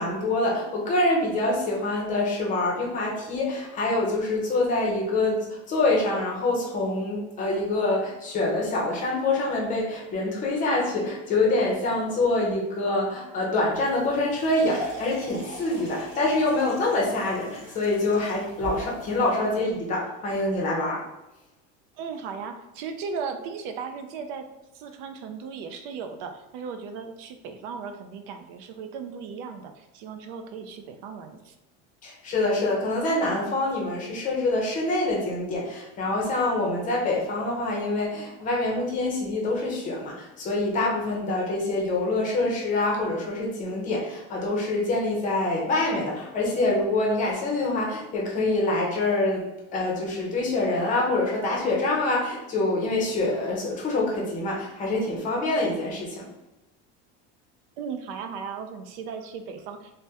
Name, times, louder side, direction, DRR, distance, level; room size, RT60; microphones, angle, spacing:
voice 1, 0.0-21.0 32.0-56.2, left 2 dB, 25° left, -2 dB, 0.6 m, -25 dB
sound 1, 13.7-19.3, equal, 10° right, 1.2 m, -41 dB
voice 2, 21.9-24.5 24.7-31.6 57.8-60.0, right 5 dB, 60° right, 7 dB, 0.4 m, -36 dB
3.4 x 2.1 x 2.8 m, 0.98 s
cardioid pair, 165°, 30 cm